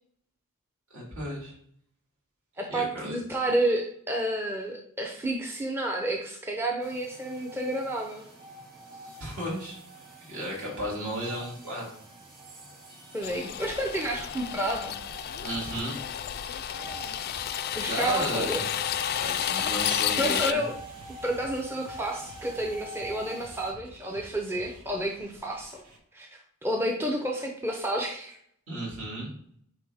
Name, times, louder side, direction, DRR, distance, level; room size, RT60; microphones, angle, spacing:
voice 1, 0.9-1.5 2.7-3.2 9.2-9.8 10.2-11.9 15.4-16.0 17.8-18.6 19.2-20.6 28.7-29.3, equal, 65° right, -4 dB, 2.6 m, -34 dB
voice 2, 2.6-8.2 13.1-15.0 17.8-18.7 20.2-20.7 21.2-25.8 26.1-28.4, right 1 dB, 10° right, 1 dB, 0.6 m, -30 dB
sound 1, 6.8-23.7, right 2 dB, 40° right, 2.0 m, -46 dB
sound 2, 13.2-20.5, left 10 dB, 45° left, 0.3 m, -31 dB
sound 3, 16.8-26.0, equal, 85° right, 1.5 m, -50 dB
8.8 x 3.1 x 3.4 m, 0.66 s
head